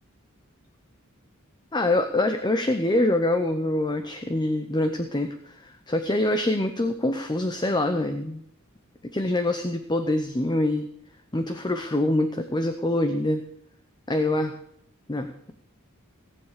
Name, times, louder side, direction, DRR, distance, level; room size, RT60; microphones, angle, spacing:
voice 1, 1.7-8.4 9.1-10.9 11.3-13.4 14.1-14.5 15.1-15.5, left 1 dB, 20° left, 7 dB, 0.7 m, -25 dB
17.5 x 7.3 x 6.6 m, 0.71 s
head